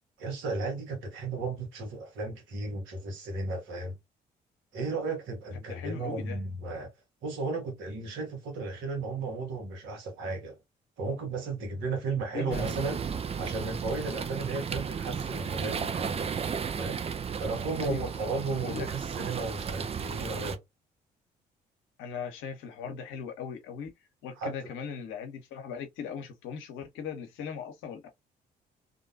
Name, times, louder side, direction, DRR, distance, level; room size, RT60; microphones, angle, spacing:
voice 1, 0.2-4.0 4.7-6.9 7.2-10.6 11.0-13.0 13.4-16.3 16.7-17.0 17.4-20.6 24.4-24.5, right 3 dB, 70° right, 1.1 m, -34 dB
voice 2, 5.7-6.4 12.3-12.8 17.8-18.3 18.6-18.9 22.0-23.9 24.2-28.1, left 7 dB, 70° left, 0.7 m, -39 dB
sound 1, 12.5-20.6, right 6 dB, 30° right, 0.4 m, -34 dB
2.5 x 2.2 x 2.6 m
hypercardioid pair, 45°, 21 cm